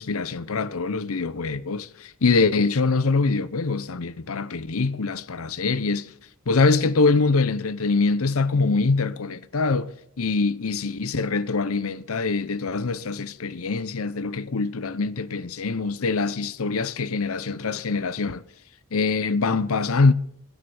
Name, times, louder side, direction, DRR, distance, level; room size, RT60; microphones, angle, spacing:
voice 1, 0.0-6.1 6.5-9.9 10.2-18.4 18.9-20.1, left 4 dB, 75° left, 0.8 m, -24 dB
17.5 x 10.5 x 6.9 m
head